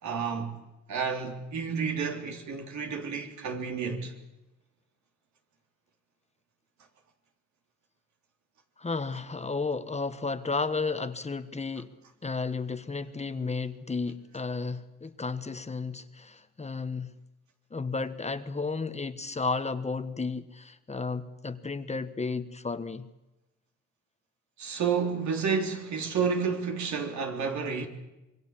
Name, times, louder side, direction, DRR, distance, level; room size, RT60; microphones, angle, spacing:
voice 1, 0.0-4.1 24.6-27.9, right 6 dB, 70° right, 3.7 m, -30 dB
voice 2, 8.8-11.9 12.2-17.1 17.7-23.1, left 4 dB, 20° left, 1.3 m, -33 dB
26.0 x 22.0 x 7.4 m
cardioid pair, 90°, 30 cm